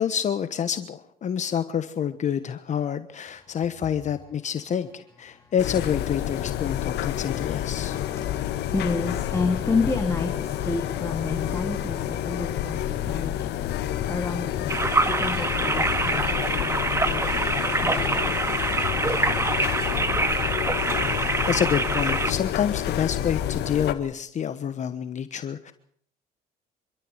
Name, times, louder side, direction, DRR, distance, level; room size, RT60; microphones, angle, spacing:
voice 1, 0.0-8.0 21.2-25.7, left 8 dB, 45° left, 11 dB, 1.2 m, -28 dB
sound 1, 5.6-23.9, left 11 dB, 80° left, 1.9 m, -29 dB
voice 2, 7.7-13.5 13.8-16.7 17.0-18.4 18.7-18.8, left 3 dB, 15° left, 3 dB, 2.9 m, -31 dB
sound 2, 14.7-22.3, right 3 dB, 15° right, 1.8 m, -25 dB
26.5 x 13.0 x 8.0 m, 0.62 s
cardioid pair, 110°, 17 cm